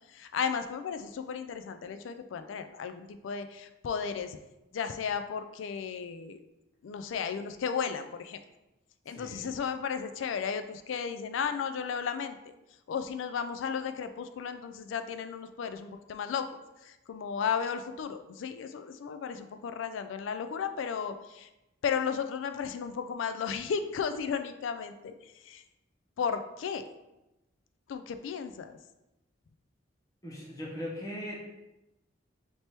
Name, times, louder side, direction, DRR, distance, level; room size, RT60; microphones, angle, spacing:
voice 1, 0.1-4.4 4.7-6.4 6.8-8.4 9.1-12.4 12.9-16.4 16.8-21.5 21.8-25.1 25.4-25.6 26.2-26.8 27.9-28.8, left 6 dB, 80° left, 9 dB, 0.3 m, -34 dB
voice 2, 9.1-9.6 30.2-31.4, equal, 20° left, -5 dB, 0.9 m, -39 dB
3.3 x 2.9 x 4.3 m, 0.96 s
head